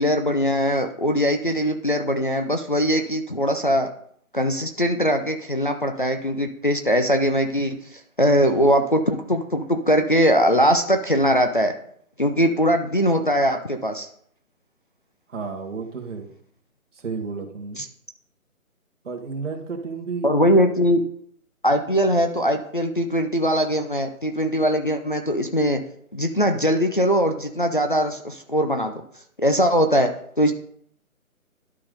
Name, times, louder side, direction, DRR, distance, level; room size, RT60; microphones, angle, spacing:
voice 1, 0.0-3.9 4.3-11.7 12.2-14.1 17.8-17.9 20.2-21.0 21.6-25.8 26.1-28.9 29.4-30.1 30.4-30.5, equal, 40° left, 4 dB, 0.5 m, -21 dB
voice 2, 15.3-16.3 16.9-17.8 19.0-20.3, right 4 dB, 55° right, 1 dB, 1.8 m, -32 dB
11.5 x 3.8 x 5.1 m, 0.63 s
hypercardioid pair, 175°, 42 cm